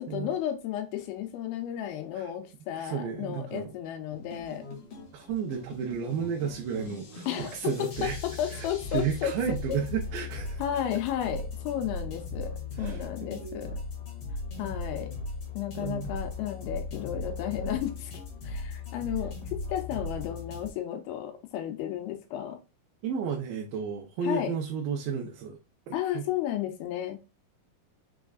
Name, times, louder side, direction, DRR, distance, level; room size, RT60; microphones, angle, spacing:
voice 1, 0.0-4.6 7.3-9.3 9.7-9.8 10.6-13.8 14.6-15.1 15.5-18.1 18.4-22.6 24.2-24.5 25.9-27.2, left 10 dB, 85° left, 2.6 m, -33 dB
voice 2, 2.7-3.7 5.1-8.2 8.5-8.7 8.9-10.6 12.8-13.7 15.8-16.1 23.0-25.6 25.9-26.2, right 6 dB, 80° right, 2.5 m, -33 dB
sound 1, 4.1-20.7, left 3 dB, 50° left, 1.9 m, -38 dB
6.2 x 3.4 x 2.4 m
omnidirectional pair, 4.3 m